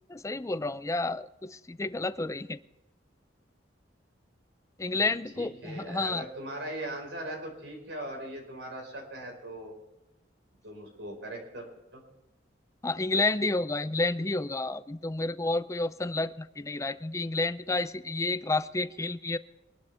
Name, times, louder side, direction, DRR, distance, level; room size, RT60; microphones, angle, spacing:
voice 1, 0.1-2.6 4.8-6.2 12.8-19.4, left 2 dB, 15° left, 15 dB, 0.5 m, -30 dB
voice 2, 5.0-9.7 10.6-11.7 11.9-12.0, right 1 dB, 80° right, 1 dB, 5.1 m, -40 dB
23.5 x 12.0 x 3.5 m, 0.98 s
head